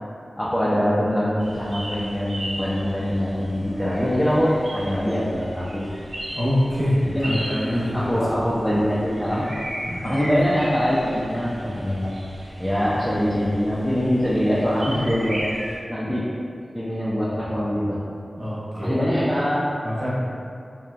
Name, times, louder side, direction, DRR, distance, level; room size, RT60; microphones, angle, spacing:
voice 1, 0.4-5.9 7.1-9.5 10.0-12.1 12.6-15.4 15.9-16.3 16.7-18.0 18.7-19.6, equal, 10° left, -8 dB, 0.3 m, -23 dB
sound 1, 1.4-15.8, equal, 80° right, 0.7 m, -36 dB
voice 2, 6.3-8.2 9.8-10.1 18.4-19.0 19.8-20.1, left 1 dB, 45° right, -9 dB, 0.8 m, -25 dB
2.8 x 2.2 x 2.5 m, 2.4 s
wide cardioid pair, 90°, 0 cm